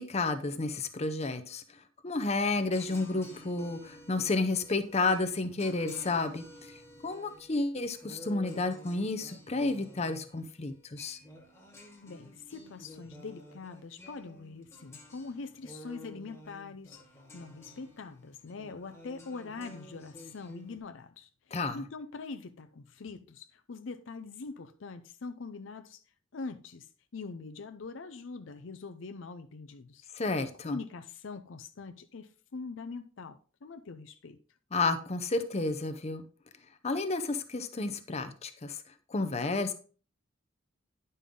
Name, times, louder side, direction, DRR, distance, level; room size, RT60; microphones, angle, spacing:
voice 1, 0.0-1.6 2.0-6.4 7.0-11.2 21.5-21.8 30.1-30.8 34.7-36.2 36.8-38.8 39.1-39.7, left 3 dB, 35° left, 0.7 m, -31 dB
sound 1, 2.5-20.8, left 1 dB, 15° left, 1.5 m, -52 dB
voice 2, 12.0-17.0 17.3-26.0 26.3-30.1 30.6-34.4, left 4 dB, 65° left, 0.5 m, -43 dB
10.0 x 5.5 x 3.7 m
head